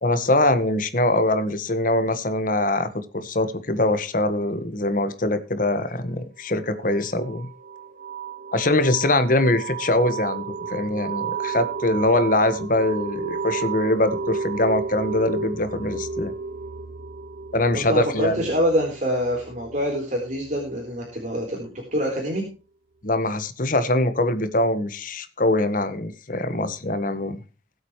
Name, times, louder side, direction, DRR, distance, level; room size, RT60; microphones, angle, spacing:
voice 1, 0.0-7.5 8.5-16.3 17.5-18.5 23.0-27.4, left 2 dB, 50° left, 11 dB, 1.5 m, -23 dB
sound 1, 6.8-21.3, right 5 dB, 90° right, 1.4 m, -33 dB
voice 2, 17.7-22.4, equal, 45° right, -1 dB, 3.9 m, -25 dB
21.0 x 8.2 x 3.2 m, 0.34 s
head